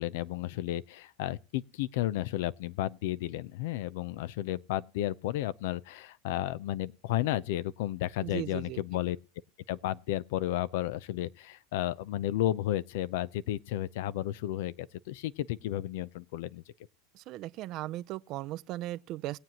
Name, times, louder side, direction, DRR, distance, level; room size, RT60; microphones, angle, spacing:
voice 1, 0.0-9.2 9.7-16.6, left 14 dB, 70° left, 0.5 m, -33 dB
voice 2, 8.2-8.8 17.1-19.4, right 16 dB, 45° right, 0.5 m, -37 dB
20.0 x 7.8 x 2.9 m
supercardioid pair, 130°, 0 cm